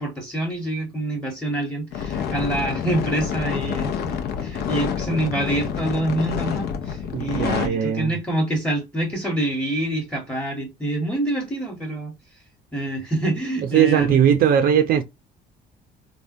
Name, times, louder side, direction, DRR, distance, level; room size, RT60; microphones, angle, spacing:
voice 1, 0.0-12.1 12.7-14.2, right 1 dB, 5° left, 1.1 m, -26 dB
sound 1, 1.9-7.7, left 7 dB, 70° left, 0.7 m, -27 dB
voice 2, 7.1-8.2 13.7-15.0, right 9 dB, 60° right, 0.5 m, -19 dB
3.4 x 2.2 x 2.6 m
cardioid pair, 110°, 17 cm